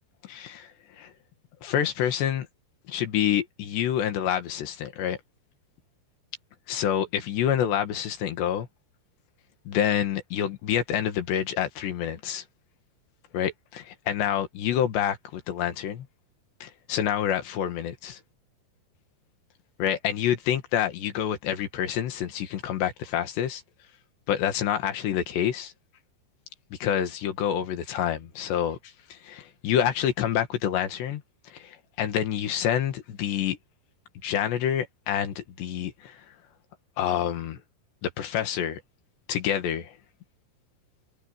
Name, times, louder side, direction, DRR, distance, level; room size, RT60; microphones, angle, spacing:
voice 1, 0.2-0.7 1.0-1.1 1.6-2.5 2.9-5.2 6.7-8.7 9.7-12.4 13.3-16.1 16.6-18.2 19.8-23.6 24.3-25.7 26.7-28.8 29.1-33.6 34.2-36.2 37.0-37.6 38.0-38.8 39.3-39.9, left 10 dB, 80° left, 4.0 m, -27 dB
omnidirectional pair, 4.9 m